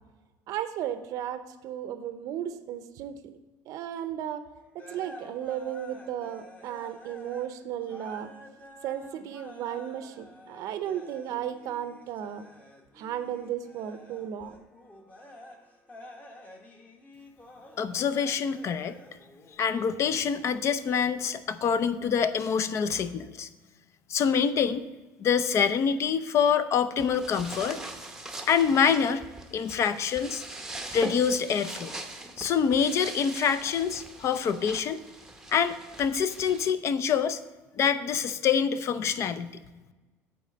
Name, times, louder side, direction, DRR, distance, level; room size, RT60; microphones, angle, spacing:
voice 1, 0.5-3.1 3.7-4.4 4.7-8.3 8.8-12.5 12.9-14.5, right 10 dB, 60° right, 11 dB, 0.6 m, -34 dB
sound 1, 4.7-7.5 7.8-19.5, left 1 dB, 25° left, 1.4 m, -50 dB
voice 2, 17.8-19.0 19.6-23.5 24.1-24.9 25.2-27.8 28.5-29.2 29.5-30.4 30.9-31.9 32.4-35.0 35.5-37.4 37.8-39.6, left 7 dB, 45° left, 13 dB, 0.5 m, -26 dB
sound 2, 27.0-36.7, right 2 dB, 5° right, 0.8 m, -42 dB
8.3 x 4.1 x 6.7 m, 1.2 s
supercardioid pair, 115°, 7 cm